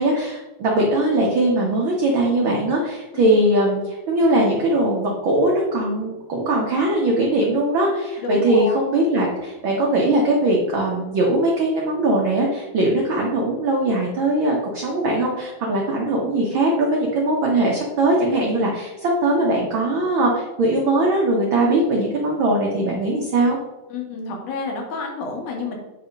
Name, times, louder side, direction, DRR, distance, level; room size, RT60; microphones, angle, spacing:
voice 1, 0.0-23.6, right 1 dB, 60° right, -2 dB, 1.4 m, -20 dB
voice 2, 8.2-8.8 23.9-25.8, left 3 dB, 80° left, 1 dB, 2.9 m, -29 dB
8.9 x 3.5 x 5.2 m, 1.1 s
omnidirectional pair, 3.4 m